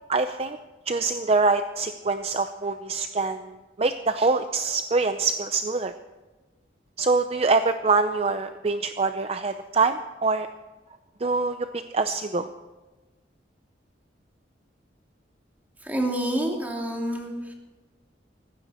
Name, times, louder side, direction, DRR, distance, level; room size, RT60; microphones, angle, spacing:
voice 1, 0.1-0.6 0.9-5.9 7.0-10.5 11.2-12.5, right 3 dB, 35° right, 9 dB, 0.6 m, -24 dB
voice 2, 15.8-17.5, right 1 dB, 10° right, 0 dB, 2.7 m, -28 dB
18.5 x 15.5 x 4.4 m, 1.2 s
head